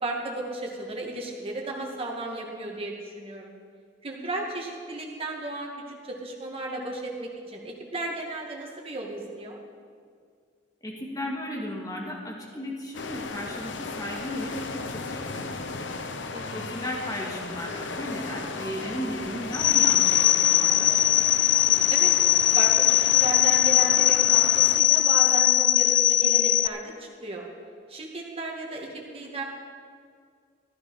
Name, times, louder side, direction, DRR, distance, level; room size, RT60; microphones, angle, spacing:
voice 1, 0.0-3.6 4.0-5.7 6.0-9.6 16.3-16.7 21.9-22.1 22.6-27.4 27.9-29.4, right 2 dB, 30° right, -1 dB, 2.2 m, -34 dB
voice 2, 10.8-15.9 16.5-21.3, equal, 20° left, -2 dB, 2.3 m, -35 dB
sound 1, 12.9-24.8, left 3 dB, 80° left, 0.9 m, -36 dB
sound 2, 19.5-26.7, left 13 dB, 45° left, 0.4 m, -20 dB
14.5 x 12.0 x 5.6 m, 2.1 s
head